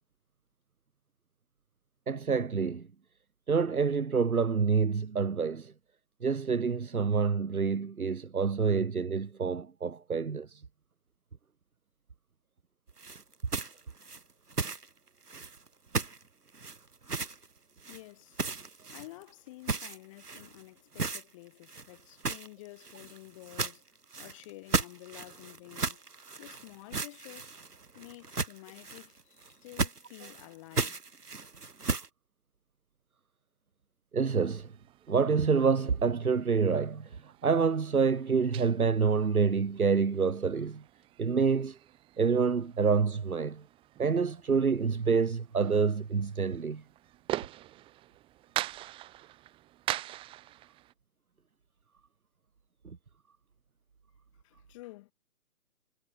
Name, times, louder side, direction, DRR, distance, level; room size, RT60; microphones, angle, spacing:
voice 1, 2.1-2.8 3.5-5.7 6.2-10.6 34.1-34.7 35.1-37.1 37.4-40.8 41.2-41.8 42.2-43.6 44.0-46.8, right 5 dB, 70° right, 1.4 m, -27 dB
sound 1, 13.0-14.9 15.3-15.7 15.9-16.2 16.5-17.5 17.8-18.0 18.3-19.3 19.6-20.6 20.9-21.2 21.6-32.1, right 4 dB, 85° right, 1.5 m, -35 dB
voice 2, 17.9-18.4 18.9-23.9 24.2-26.0 26.4-27.6 27.9-31.0 54.4-55.1, left 19 dB, 20° left, 3.1 m, -50 dB
sound 2, 34.4-50.9, right 15 dB, 10° right, 3.0 m, -43 dB
figure-of-eight pair, 140°, 45 cm